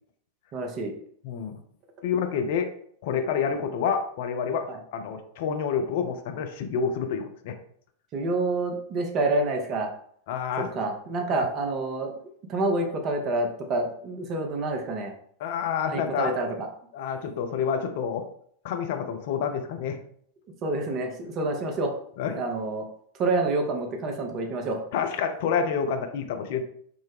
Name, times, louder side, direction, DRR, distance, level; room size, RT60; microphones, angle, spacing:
voice 1, 0.5-0.9 4.7-4.8 8.1-9.9 10.6-12.2 12.5-15.1 15.9-16.5 20.6-21.9 22.3-22.9 23.2-24.8, right 2 dB, 35° right, 3 dB, 0.6 m, -28 dB
voice 2, 1.2-1.5 2.0-2.7 3.0-4.7 4.9-7.6 10.3-10.8 11.3-11.5 15.4-16.3 16.9-18.3 18.6-20.0 22.2-22.3 24.9-26.6, left 6 dB, 50° left, 7 dB, 0.4 m, -28 dB
3.4 x 2.1 x 3.4 m, 0.63 s
figure-of-eight pair, 90°, 0 cm